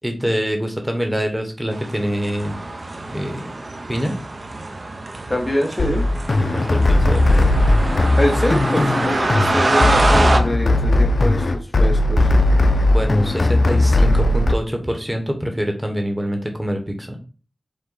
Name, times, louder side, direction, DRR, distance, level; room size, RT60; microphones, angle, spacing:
voice 1, 0.0-2.5 3.1-3.4 3.9-4.1 6.5-7.4 12.9-17.2, equal, 10° right, 3 dB, 1.0 m, -25 dB
sound 1, 1.7-10.4, right 2 dB, 55° right, 0.6 m, -24 dB
voice 2, 5.3-6.0 8.2-12.3, left 1 dB, 30° left, 1 dB, 1.0 m, -24 dB
sound 2, 5.8-14.5, left 2 dB, 65° left, 0.5 m, -17 dB
5.1 x 2.2 x 4.0 m, 0.36 s
wide cardioid pair, 60°, 0 cm